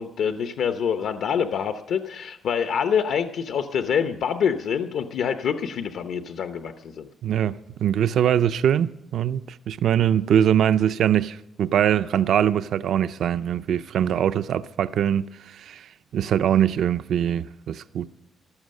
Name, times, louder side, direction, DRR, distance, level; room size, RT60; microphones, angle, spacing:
voice 1, 0.0-7.1, left 7 dB, 65° left, 0.7 m, -26 dB
voice 2, 7.2-7.6 7.8-18.1, right 9 dB, 60° right, 0.4 m, -22 dB
14.5 x 12.5 x 6.4 m
cardioid pair, 180°, 0 cm